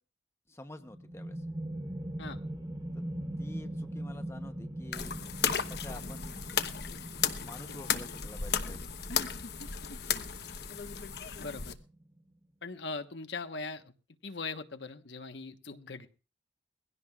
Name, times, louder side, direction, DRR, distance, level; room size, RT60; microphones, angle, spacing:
voice 1, 0.5-1.4 2.9-3.0 3.4-5.2 5.7-6.3 7.4-8.9, left 1 dB, 15° left, 8 dB, 0.8 m, -48 dB
sound 1, 0.8-12.2, right 1 dB, 20° right, 1.2 m, -42 dB
sound 2, 4.9-11.7, left 7 dB, 60° left, 1.0 m, -34 dB
voice 2, 11.4-11.8 12.6-13.9 14.2-16.1, left 3 dB, 80° left, 8 dB, 1.2 m, -40 dB
21.5 x 16.5 x 2.4 m, 0.34 s
head